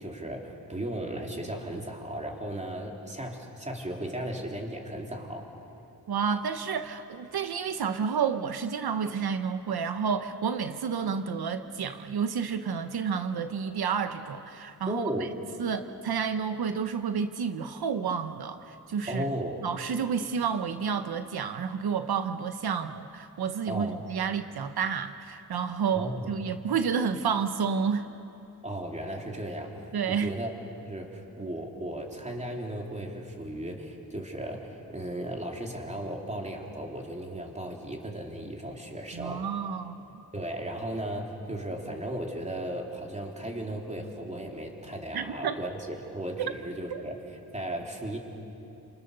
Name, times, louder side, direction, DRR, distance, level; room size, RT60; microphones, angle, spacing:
voice 1, 0.0-5.5 14.9-15.3 19.1-19.6 23.7-24.0 25.9-26.3 28.6-30.5 30.8-39.5 40.3-47.2 47.5-48.2, right 1 dB, 20° right, 0 dB, 3.5 m, -36 dB
voice 2, 6.1-15.0 15.6-19.2 19.6-28.1 29.9-30.3 39.1-40.2 45.1-45.6 46.4-46.5 46.9-47.0, right 6 dB, 80° right, 9 dB, 1.0 m, -30 dB
29.5 x 27.0 x 6.8 m, 2.8 s
wide cardioid pair, 120°, 37 cm